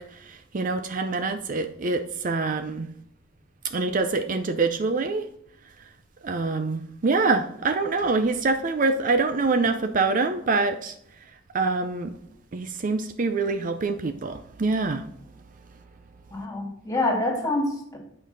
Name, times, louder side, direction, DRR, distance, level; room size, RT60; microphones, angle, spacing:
voice 1, 0.0-2.9 3.7-5.3 6.2-10.9 11.5-12.1 12.5-15.0, right 3 dB, 45° right, 0.5 m, -25 dB
voice 2, 16.3-18.0, left 2 dB, 20° left, 2.0 m, -26 dB
8.8 x 5.2 x 3.9 m
head